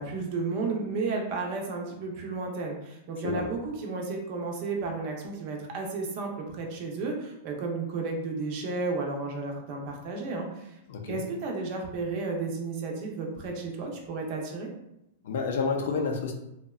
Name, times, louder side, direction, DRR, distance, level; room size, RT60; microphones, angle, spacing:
voice 1, 0.0-10.8 11.1-14.7, right 3 dB, 40° right, 0 dB, 0.5 m, -33 dB
voice 2, 10.9-11.2 15.2-16.3, left 4 dB, 70° left, 3 dB, 0.4 m, -29 dB
2.7 x 2.1 x 2.3 m, 0.86 s
supercardioid pair, 155°, 0 cm